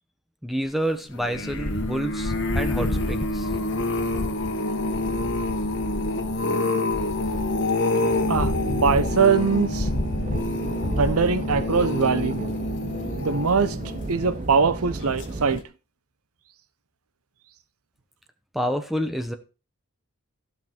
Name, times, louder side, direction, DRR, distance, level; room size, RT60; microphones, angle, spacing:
voice 1, 0.4-3.5 18.5-19.3, equal, ahead, 0.9 m, -28 dB
sound 1, 1.1-14.5 15.0-15.3 15.6-15.7, left 2 dB, 55° left, 1.5 m, -27 dB
sound 2, 7.9-15.6, right 2 dB, 30° right, 0.6 m, -34 dB
voice 2, 8.3-9.9 11.0-12.4 13.2-13.8 14.1-15.6, right 5 dB, 90° right, 0.9 m, -22 dB
15.0 x 5.7 x 4.5 m
head